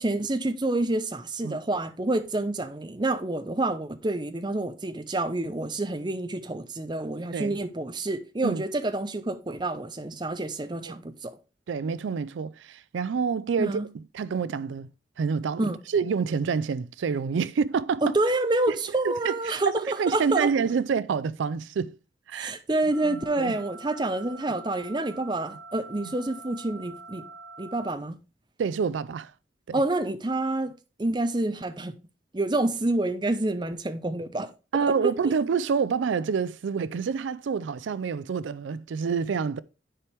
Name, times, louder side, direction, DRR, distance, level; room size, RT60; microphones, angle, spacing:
voice 1, 0.0-11.4 13.6-13.9 15.6-15.8 18.0-20.5 22.3-27.3 27.6-28.2 29.7-30.7 31.0-32.0 32.3-34.5 35.0-35.1, right 2 dB, 25° right, 0.6 m, -28 dB
voice 2, 11.7-13.8 14.1-14.9 15.2-18.0 19.0-22.0 22.3-22.5 23.0-23.5 26.0-26.1 28.6-29.3 29.7-29.8 34.7-39.6, right 6 dB, 85° right, 0.4 m, -27 dB
sound 1, 22.9-27.9, right 4 dB, 75° left, 2.7 m, -45 dB
10.0 x 4.5 x 3.3 m
head